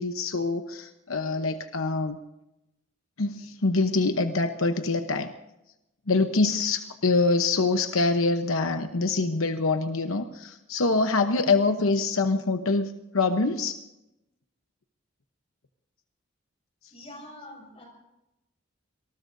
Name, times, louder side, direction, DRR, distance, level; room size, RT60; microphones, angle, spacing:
voice 1, 0.0-2.2 3.2-5.3 6.1-13.8, left 3 dB, 90° left, 7 dB, 1.0 m, -25 dB
voice 2, 16.9-17.9, left 1 dB, 30° left, 0 dB, 6.4 m, -44 dB
26.0 x 19.5 x 2.7 m, 0.90 s
head